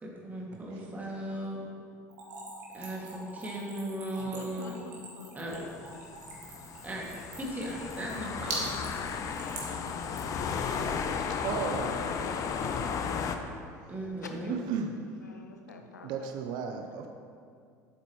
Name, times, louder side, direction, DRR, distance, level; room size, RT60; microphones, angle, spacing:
voice 1, 0.0-1.6 2.7-4.7 5.3-5.6 6.8-7.1 7.4-8.7 13.9-14.6, right 1 dB, 20° right, -3 dB, 2.3 m, -37 dB
Splash splatter / Trickle dribble, 2.1-10.4, right 3 dB, 65° right, 2.2 m, -42 dB
voice 2, 4.2-4.7 5.1-5.7 8.0-8.2 11.7-12.7 14.2-14.5 15.2-16.9, left 3 dB, 80° left, 4 dB, 0.7 m, -47 dB
sound 1, 5.5-13.4, left 6 dB, 35° left, 0.7 m, -34 dB
voice 3, 11.4-11.9 12.7-13.3 14.7-14.9 16.0-17.1, right 6 dB, 50° right, 5 dB, 0.6 m, -35 dB
11.5 x 8.1 x 3.2 m, 2.3 s
figure-of-eight pair, 70°, 9 cm